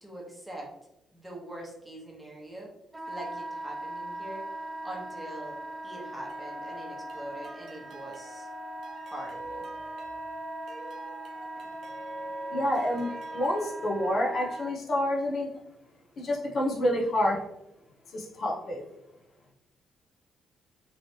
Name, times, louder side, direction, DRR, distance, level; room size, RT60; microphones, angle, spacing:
voice 1, 0.0-0.7 1.1-2.7 3.1-4.6 4.8-8.5 9.0-9.7, right 1 dB, 5° right, -3 dB, 1.1 m, -43 dB
Wind instrument woodwind instrument, 2.9-14.7, right 2 dB, 20° right, 0.4 m, -40 dB
sound 1, 6.3-13.7, right 1 dB, 70° right, 0.6 m, -45 dB
voice 2, 12.5-15.5 16.2-17.4 18.1-18.8, left 1 dB, 60° left, -3 dB, 0.8 m, -28 dB
3.1 x 3.1 x 2.8 m, 0.87 s
cardioid pair, 90°, 0 cm